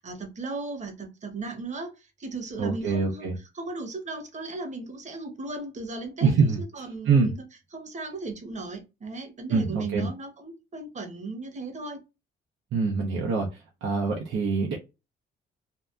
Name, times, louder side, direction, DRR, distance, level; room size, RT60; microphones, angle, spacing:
voice 1, 0.0-7.4 7.7-12.0, right 3 dB, 35° right, 0.9 m, -36 dB
voice 2, 2.6-3.3 6.2-6.6 7.0-7.3 9.5-10.1 12.7-13.5 13.8-14.8, right 4 dB, 75° right, 0.7 m, -24 dB
2.7 x 2.2 x 2.3 m
cardioid pair, 90°, 20 cm